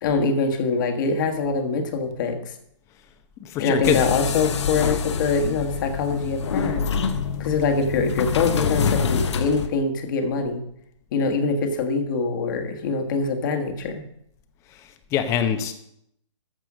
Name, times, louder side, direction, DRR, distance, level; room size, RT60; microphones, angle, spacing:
voice 1, 0.0-2.5 3.6-6.9 7.4-10.6 11.1-14.0, left 4 dB, 40° left, 5 dB, 1.5 m, -24 dB
voice 2, 3.4-4.0 15.1-15.7, left 9 dB, 15° left, 9 dB, 0.8 m, -23 dB
sound 1, 3.8-9.7, left 6 dB, 60° left, 1.1 m, -26 dB
13.5 x 4.8 x 6.1 m, 0.74 s
hypercardioid pair, 145°, 17 cm